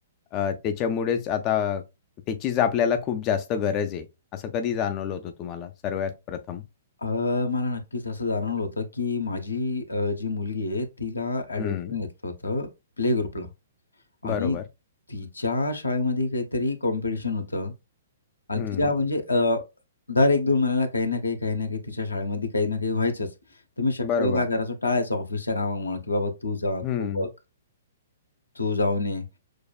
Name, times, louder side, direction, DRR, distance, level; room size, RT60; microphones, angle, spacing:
voice 1, 0.3-1.8 2.3-4.1 4.3-6.6 11.5-12.0 14.2-14.6 18.6-18.9 24.0-24.5 26.8-27.3, left 8 dB, 30° left, 0.4 m, -27 dB
voice 2, 7.0-12.7 13.0-13.5 14.2-14.6 15.1-17.7 18.5-19.6 20.1-23.3 23.8-27.3 28.6-29.2, left 3 dB, 75° left, 0.9 m, -26 dB
6.3 x 2.3 x 2.3 m
figure-of-eight pair, 115°, 0 cm